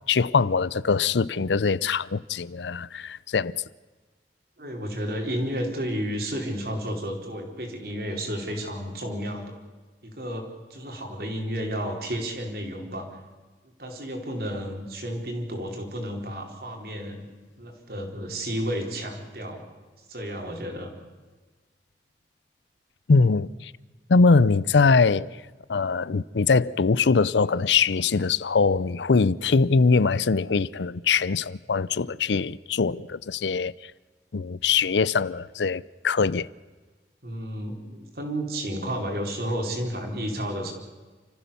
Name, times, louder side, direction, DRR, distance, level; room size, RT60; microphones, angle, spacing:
voice 1, 0.1-3.5 23.1-23.7 24.1-25.3 25.7-33.7 34.3-36.5, left 4 dB, 90° left, 0.6 m, -22 dB
voice 2, 4.6-9.4 10.0-13.2 13.8-17.2 17.6-19.6 20.0-20.9 37.2-40.7, equal, 60° right, 4.2 m, -32 dB
29.0 x 15.0 x 7.0 m
head